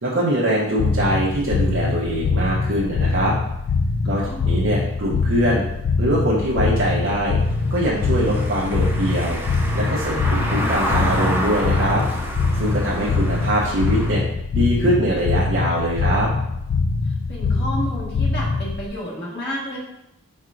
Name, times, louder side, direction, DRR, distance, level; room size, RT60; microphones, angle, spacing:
voice 1, 0.0-3.3 4.0-5.6 6.0-7.4 7.7-9.4 9.7-12.0 12.5-14.2 14.5-16.3, right 1 dB, 70° right, -6 dB, 0.8 m, -22 dB
sound 1, 0.8-18.9, left 4 dB, 85° left, 0.3 m, -23 dB
voice 2, 4.0-4.5 12.9-13.3 17.0-19.8, equal, 50° left, -6 dB, 1.4 m, -31 dB
Car passing by / Engine, 7.4-14.1, equal, 10° right, 0.3 m, -28 dB
4.7 x 4.4 x 2.5 m, 0.84 s
head